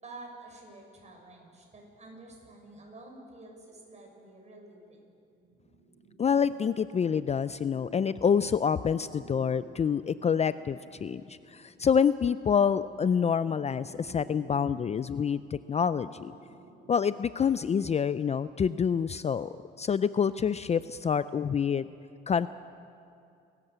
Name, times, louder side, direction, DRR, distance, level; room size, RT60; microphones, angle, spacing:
voice 1, 0.0-5.1, right 2 dB, 35° right, 0 dB, 7.1 m, -49 dB
sound 1, 5.4-17.8, right 2 dB, 75° right, 5.9 m, -53 dB
voice 2, 6.2-16.3 16.9-19.5 19.8-21.9 22.3-22.5, left 7 dB, 35° left, 15 dB, 0.4 m, -27 dB
29.5 x 13.5 x 8.0 m, 2.5 s
cardioid pair, 90°, 20 cm